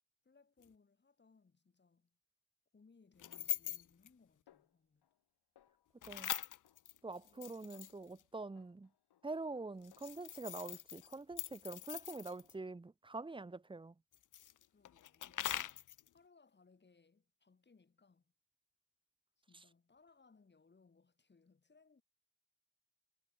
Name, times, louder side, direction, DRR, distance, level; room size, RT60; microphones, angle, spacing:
voice 1, 0.2-2.2 2.7-5.1 7.2-7.5 14.7-18.3 19.4-22.0, left 4 dB, 25° left, 5.0 m, -68 dB
sound 1, 0.6-0.7 3.2-4.1 6.0-8.2 9.8-12.5 14.1-16.1, left 11 dB, 50° left, 0.7 m, -43 dB
Snare drum, 4.5-5.3 5.6-6.1 6.6-7.4 7.7-8.1 8.6-10.7 11.0-11.5 12.0-12.7, left 11 dB, 80° left, 5.1 m, -72 dB
voice 2, 7.0-8.9 9.2-14.0 19.5-19.6, right 3 dB, 15° right, 1.0 m, -45 dB
cardioid pair, 135°, 39 cm